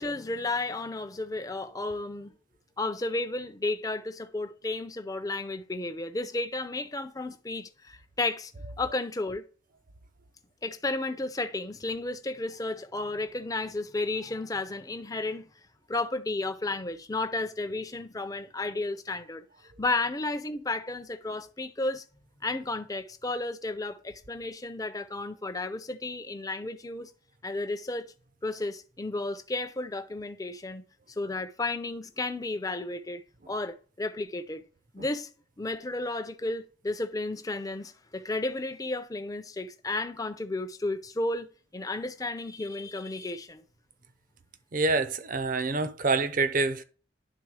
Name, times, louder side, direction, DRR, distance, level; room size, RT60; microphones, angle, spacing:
voice 1, 0.0-2.3 2.8-8.5 8.8-9.4 10.6-15.5 15.9-19.4 19.8-22.0 22.4-27.1 27.4-28.1 28.4-30.8 31.2-33.2 33.5-34.6 34.9-35.3 35.6-41.5 41.7-43.6, left 2 dB, 20° left, 0.6 m, -33 dB
voice 2, 44.7-46.8, right 3 dB, 45° right, 0.6 m, -26 dB
11.0 x 3.6 x 4.8 m
head